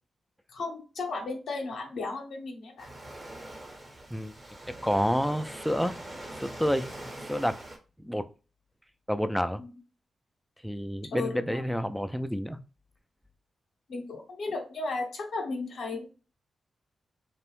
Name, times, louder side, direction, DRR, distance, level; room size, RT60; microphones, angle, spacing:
voice 1, 0.5-2.9 9.6-9.7 11.1-11.7 13.9-16.1, left 3 dB, 75° left, 0.6 m, -35 dB
Waves surf, 2.8-7.8, right 1 dB, 30° right, 1.0 m, -43 dB
voice 2, 4.8-6.0 6.4-6.9 7.2-7.6 8.0-8.2 9.1-9.6 10.6-12.6, equal, ahead, 0.3 m, -29 dB
2.6 x 2.0 x 3.0 m
supercardioid pair, 50°, 0 cm